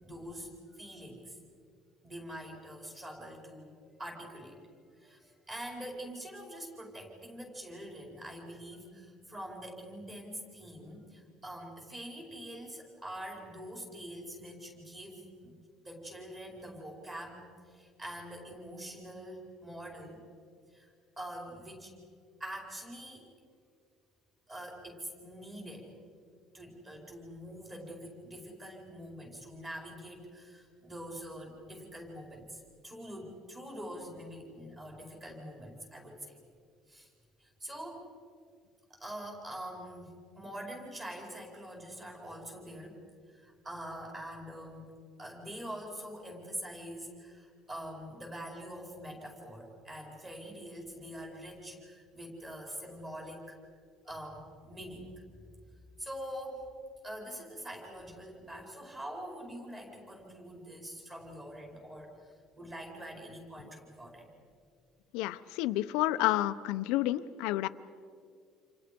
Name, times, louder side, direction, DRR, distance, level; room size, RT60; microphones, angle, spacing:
voice 1, 0.0-1.4 2.0-4.6 5.0-15.5 15.8-20.2 20.7-21.9 22.4-23.3 24.5-26.0 26.5-36.4 36.9-37.1 37.4-38.1 38.9-43.0 43.3-53.6 54.0-55.2 56.0-56.7 57.0-64.3, equal, 15° right, 0 dB, 5.0 m, -45 dB
voice 2, 65.1-67.7, left 15 dB, 85° left, 10 dB, 0.7 m, -30 dB
29.5 x 28.0 x 5.3 m, 2.2 s
cardioid pair, 175°, 0 cm